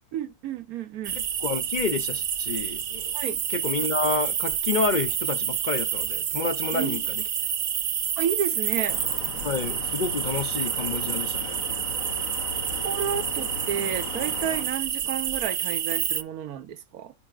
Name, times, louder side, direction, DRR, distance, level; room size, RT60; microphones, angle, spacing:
voice 1, 0.1-1.2 3.1-3.4 6.7-7.0 8.2-9.0 12.8-17.1, right 9 dB, 85° right, 1.4 m, -31 dB
sound 1, 1.0-16.2, right 9 dB, 55° right, 0.6 m, -29 dB
voice 2, 1.2-3.1 3.5-7.2 9.4-11.6, left 4 dB, 50° left, 0.5 m, -29 dB
sound 2, 8.9-14.7, left 7 dB, 70° left, 1.1 m, -38 dB
15.0 x 5.0 x 2.4 m
omnidirectional pair, 1.5 m